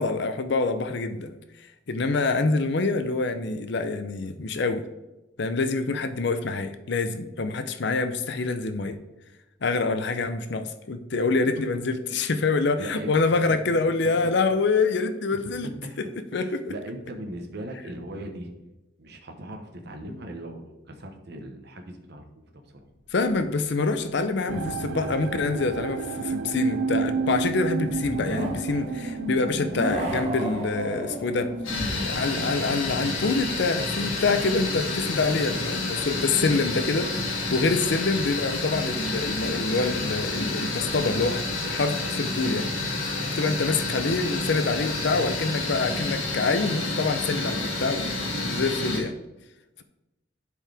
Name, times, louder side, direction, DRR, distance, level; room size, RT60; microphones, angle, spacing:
voice 1, 0.0-1.4 1.9-4.9 5.4-9.0 9.6-15.7 16.0-16.1 16.3-16.6 20.1-20.2 23.1-31.5 32.0-42.7 43.0-43.1 43.4-49.1, left 3 dB, 60° left, 9 dB, 0.6 m, -26 dB
voice 2, 12.8-13.6 15.8-16.0 16.3-18.5 19.0-22.4 22.7-22.8 37.4-37.6, right 1 dB, 55° right, 4 dB, 1.1 m, -39 dB
sound 1, 23.0-23.7 24.1-24.2 27.8-34.3 39.2-39.3 40.8-42.1, equal, 30° right, 1.7 m, -35 dB
sound 2, 24.5-35.6 35.9-36.5 37.1-37.2, right 5 dB, 85° right, 0.4 m, -33 dB
sound 3, 31.6-49.0, left 2 dB, 85° left, 1.8 m, -29 dB
11.0 x 4.6 x 3.4 m, 1.0 s
head